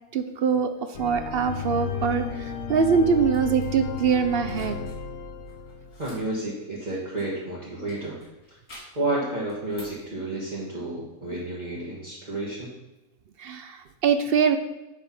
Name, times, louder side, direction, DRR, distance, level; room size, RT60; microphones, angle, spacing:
voice 1, 0.1-0.7 1.0-4.8 13.4-14.6, right 6 dB, 60° right, 8 dB, 0.6 m, -23 dB
sound 1, 0.9-6.1, left 6 dB, 60° left, 1.0 m, -34 dB
sound 2, 3.3-3.7 4.4-5.0 5.3-7.4 7.9-9.1 9.5-10.1, left 1 dB, 85° left, 3.3 m, -48 dB
voice 2, 6.0-8.2 8.9-12.7, right 2 dB, 30° right, -7 dB, 1.6 m, -31 dB
10.0 x 3.4 x 5.8 m, 1.0 s
omnidirectional pair, 1.5 m